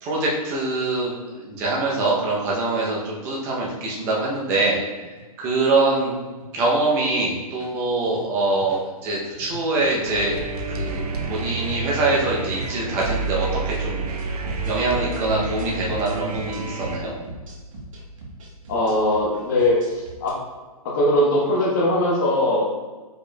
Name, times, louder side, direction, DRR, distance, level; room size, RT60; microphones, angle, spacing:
voice 1, 0.0-4.8 5.4-6.2 6.5-10.4 10.8-11.0 11.3-14.0 14.6-17.1, right 2 dB, 15° right, -4 dB, 0.6 m, -24 dB
sound 1, 5.1-5.5 5.9-6.0 6.4-6.6 7.2-7.7 8.0-8.2 8.6-8.9 9.3-20.3, equal, 60° right, 1.2 m, -38 dB
sound 2, 10.0-17.0, right 4 dB, 85° right, 0.7 m, -29 dB
voice 2, 18.7-20.4 20.8-22.6, left 1 dB, 30° left, -2 dB, 1.0 m, -20 dB
4.9 x 4.3 x 2.2 m, 1.3 s
hypercardioid pair, 165°, 19 cm